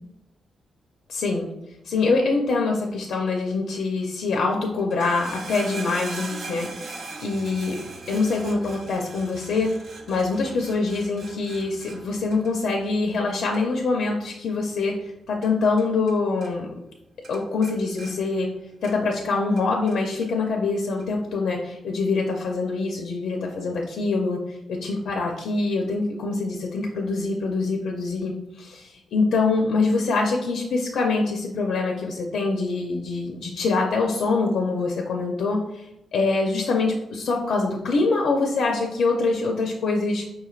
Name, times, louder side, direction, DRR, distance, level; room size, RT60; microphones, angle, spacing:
voice 1, 1.1-1.5 1.8-9.7 10.1-16.7 17.3-18.5 18.8-35.9 36.1-40.2, left 3 dB, 75° left, 1 dB, 0.5 m, -24 dB
sound 1, 4.8-16.2 16.4-17.0 17.2-19.2 19.6-20.3 21.0-21.1, right 3 dB, 55° right, 0.5 m, -41 dB
5.0 x 3.1 x 2.4 m, 0.89 s
wide cardioid pair, 145°, 0 cm